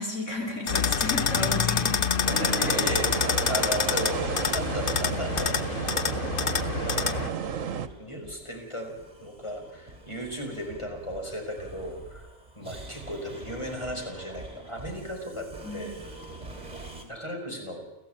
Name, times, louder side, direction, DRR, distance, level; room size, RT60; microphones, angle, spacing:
voice 1, 0.0-2.7 15.6-15.9, left 2 dB, 65° left, 2 dB, 5.5 m, -33 dB
sound 1, 0.7-7.3, left 7 dB, 45° left, 1.1 m, -27 dB
voice 2, 2.3-5.6 6.7-12.3 12.6-15.9 17.1-17.9, equal, 20° left, 2 dB, 5.3 m, -36 dB
sound 2, 2.3-7.9, right 7 dB, 80° right, 1.5 m, -32 dB
sound 3, 6.9-17.1, right 2 dB, 30° right, 3.5 m, -45 dB
29.5 x 15.0 x 9.0 m, 1.0 s
omnidirectional pair, 1.3 m